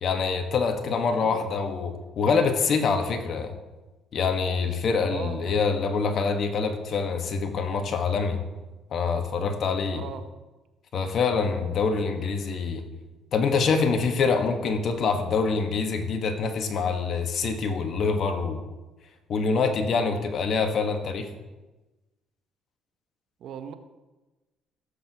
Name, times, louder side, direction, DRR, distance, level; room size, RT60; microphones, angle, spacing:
voice 1, 0.0-3.6 4.1-8.4 8.9-10.0 10.9-12.8 13.3-18.6 19.3-21.3, left 5 dB, 55° left, 5 dB, 1.4 m, -25 dB
voice 2, 1.1-1.4 5.1-5.6 9.9-10.3 12.0-12.1 23.4-23.7, right 8 dB, 70° right, 9 dB, 0.9 m, -38 dB
17.0 x 8.0 x 3.0 m, 1.1 s
cardioid pair, 90°, 0 cm